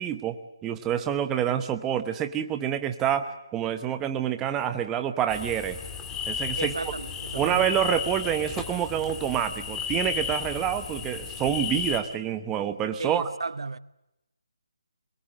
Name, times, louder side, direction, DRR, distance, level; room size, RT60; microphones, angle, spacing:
voice 1, 0.0-5.8 6.3-6.9 7.3-13.3, right 9 dB, 10° right, 0.9 m, -27 dB
sound 1, 5.3-12.0, left 7 dB, 10° left, 1.7 m, -34 dB
voice 2, 6.6-7.6 13.0-13.8, right 4 dB, 70° right, 0.8 m, -33 dB
23.5 x 22.5 x 7.7 m
figure-of-eight pair, 160°, 3 cm